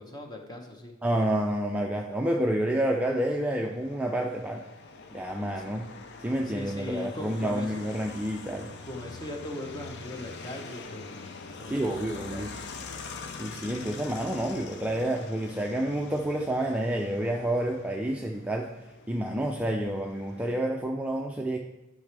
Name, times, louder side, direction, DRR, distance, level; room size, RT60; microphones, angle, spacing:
voice 1, 0.0-1.0 5.5-5.7 6.4-7.8 8.8-11.3 11.6-12.4, left 1 dB, 20° left, 2 dB, 0.9 m, -39 dB
voice 2, 1.0-4.6 5.1-5.9 6.2-8.7 11.7-12.5 13.4-18.7 19.1-21.6, right 1 dB, 5° right, 1 dB, 0.4 m, -29 dB
sound 1, 2.2-20.6, left 4 dB, 50° left, 0.5 m, -45 dB
10.5 x 5.7 x 3.3 m, 1.0 s
head